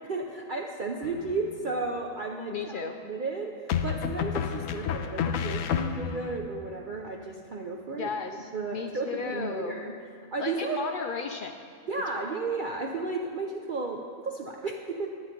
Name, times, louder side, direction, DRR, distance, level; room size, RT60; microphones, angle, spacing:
voice 1, 0.0-3.5 3.8-8.1 8.5-9.9 10.3-10.8 11.9-15.1, right 3 dB, 50° right, 1 dB, 0.6 m, -33 dB
sound 1, 1.0-1.6 3.7-6.4, left 8 dB, 75° left, 1.0 m, -30 dB
voice 2, 2.5-2.9 7.9-9.7 10.4-11.6 12.1-12.3, left 5 dB, 90° left, 5 dB, 0.4 m, -34 dB
10.0 x 9.1 x 5.1 m, 2.2 s
omnidirectional pair, 1.5 m